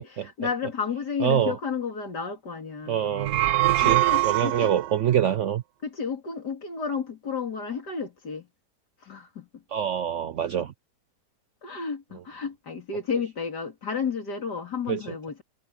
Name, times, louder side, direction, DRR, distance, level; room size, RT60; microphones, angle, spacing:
voice 1, 0.0-3.0 3.8-4.7 5.8-8.5 9.0-9.6 11.6-15.4, left 6 dB, 75° left, 3.6 m, -32 dB
voice 2, 1.2-1.5 2.9-5.6 9.7-10.7 14.9-15.0, right 9 dB, 65° right, 0.7 m, -25 dB
sound 1, 3.1-5.0, right 16 dB, 85° right, 1.4 m, -23 dB
omnidirectional pair, 1.8 m